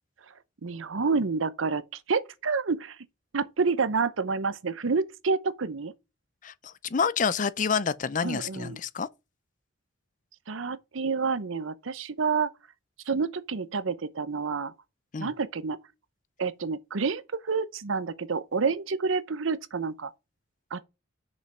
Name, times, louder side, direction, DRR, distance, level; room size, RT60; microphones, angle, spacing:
voice 1, 0.6-3.0 3.3-5.9 8.2-8.8 10.5-12.5 13.1-14.7 15.2-15.8 16.4-20.1 20.7-20.8, right 4 dB, 80° right, 0.7 m, -28 dB
voice 2, 6.4-9.1 15.1-15.3, left 6 dB, 40° left, 0.5 m, -28 dB
6.4 x 5.3 x 5.3 m
head